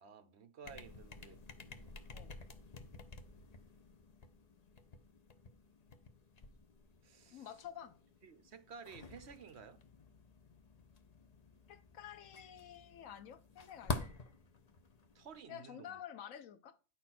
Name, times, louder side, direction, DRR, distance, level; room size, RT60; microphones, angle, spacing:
voice 1, 0.0-1.9 7.0-7.5 8.2-9.8 15.1-16.0, right 6 dB, 60° right, 1.1 m, -54 dB
sound 1, 0.6-15.4, left 3 dB, 35° left, 0.8 m, -49 dB
voice 2, 7.3-8.0 11.7-14.2 15.5-16.8, left 9 dB, 90° left, 1.2 m, -50 dB
10.5 x 4.3 x 5.9 m
omnidirectional pair, 1.3 m